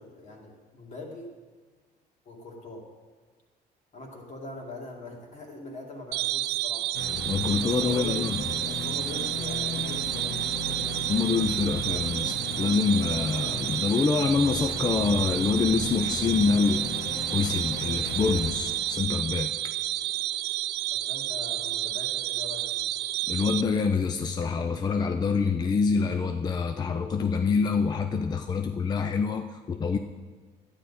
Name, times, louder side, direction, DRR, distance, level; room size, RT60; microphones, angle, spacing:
voice 1, 0.0-1.3 2.3-2.9 3.9-6.9 7.6-10.8 20.9-22.9, left 2 dB, 45° left, 0 dB, 2.2 m, -42 dB
sound 1, 6.1-23.6, right 15 dB, 80° right, 0.4 m, -30 dB
sound 2, 6.9-19.0, left 3 dB, 90° left, 1.5 m, -36 dB
voice 2, 7.2-8.4 11.1-16.9 17.3-19.5 23.3-30.0, left 5 dB, 25° left, 7 dB, 0.4 m, -26 dB
11.5 x 9.5 x 4.2 m, 1.4 s
cardioid pair, 110°, 17 cm